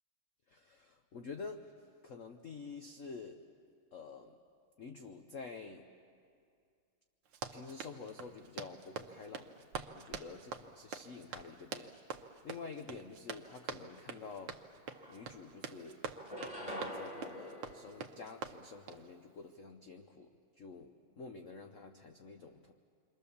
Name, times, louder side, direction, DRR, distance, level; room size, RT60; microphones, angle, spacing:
voice 1, 0.5-3.4 3.9-4.3 4.8-5.9 7.5-9.7 9.9-11.9 12.4-14.6 15.1-16.0 16.5-20.3 20.6-22.7, left 4 dB, 50° left, 5 dB, 1.0 m, -49 dB
Run, 7.3-19.1, right 6 dB, 80° right, 1.9 m, -46 dB
sound 1, 14.5-14.6 14.9-15.7 16.1-18.7, equal, 15° left, 3.7 m, -46 dB
28.5 x 24.5 x 7.0 m, 2.3 s
omnidirectional pair, 2.3 m